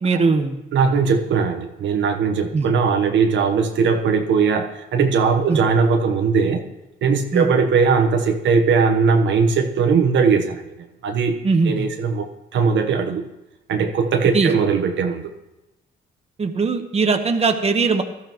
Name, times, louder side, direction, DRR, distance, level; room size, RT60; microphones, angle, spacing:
voice 1, 0.0-0.6 2.5-2.7 5.5-5.6 7.3-7.5 11.4-11.9 14.3-14.5 16.4-18.0, right 4 dB, 30° right, 5 dB, 1.3 m, -19 dB
voice 2, 0.7-6.6 7.0-10.7 11.0-12.3 12.5-13.3 13.7-15.3, right 5 dB, 70° right, 5 dB, 1.2 m, -19 dB
17.0 x 13.0 x 3.1 m, 0.98 s
cardioid pair, 90°, 20 cm